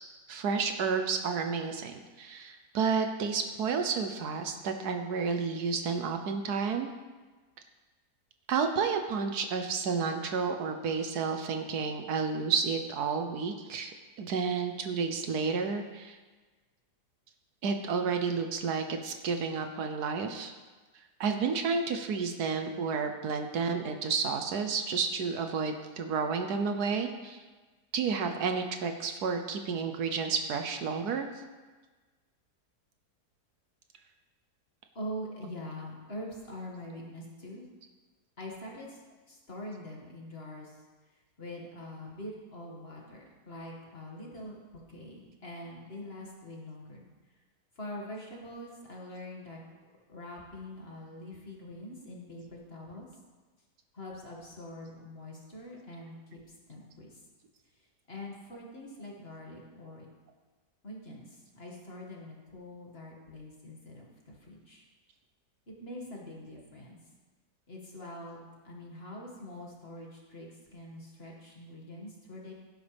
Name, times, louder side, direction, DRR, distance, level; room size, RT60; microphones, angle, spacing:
voice 1, 0.3-6.9 8.5-16.2 17.6-20.5 21.2-27.4 27.9-31.3, right 5 dB, 75° right, 6 dB, 1.4 m, -31 dB
voice 2, 34.9-37.7 38.4-39.0 39.3-40.8 41.1-44.6 44.9-47.0 47.7-49.6 50.1-53.1 53.9-57.2 57.7-60.1 60.8-64.9 65.7-67.0 67.7-72.5, left 1 dB, 35° left, -3 dB, 2.3 m, -44 dB
16.5 x 9.0 x 3.5 m, 1.3 s
omnidirectional pair, 1.7 m